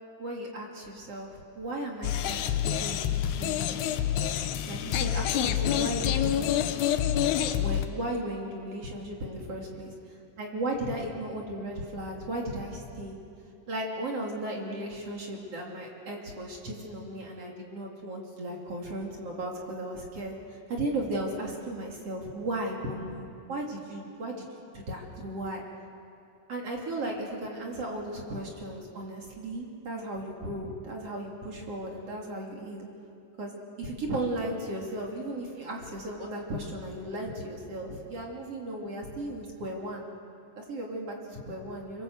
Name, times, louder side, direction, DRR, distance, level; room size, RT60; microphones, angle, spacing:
voice 1, 0.2-4.1 4.7-6.4 7.5-9.9 10.4-13.1 13.7-24.4 24.7-25.6 26.5-32.9 33.4-40.1 40.6-42.0, right 1 dB, 40° right, -1 dB, 3.3 m, -36 dB
sound 1, 2.0-7.9, left 10 dB, 75° left, 2.8 m, -27 dB
25.5 x 24.5 x 8.0 m, 2.5 s
omnidirectional pair, 5.0 m